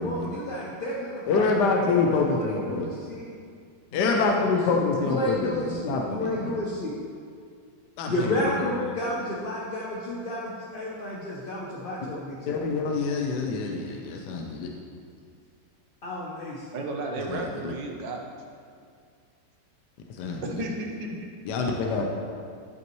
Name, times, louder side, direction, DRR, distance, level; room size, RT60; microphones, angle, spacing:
voice 1, 0.0-3.3 3.9-4.6 5.0-6.9 8.1-12.6 16.0-16.6, left 1 dB, 45° left, -5 dB, 0.7 m, -31 dB
voice 2, 1.3-2.9 3.9-6.5 8.0-8.7 12.5-14.7 17.3-17.7 20.2-20.6 21.4-22.1, left 4 dB, 70° left, 1 dB, 1.2 m, -26 dB
voice 3, 16.7-18.2 20.4-21.3, right 2 dB, 75° right, 1 dB, 1.5 m, -33 dB
13.0 x 5.6 x 3.1 m, 2.2 s
omnidirectional pair, 2.0 m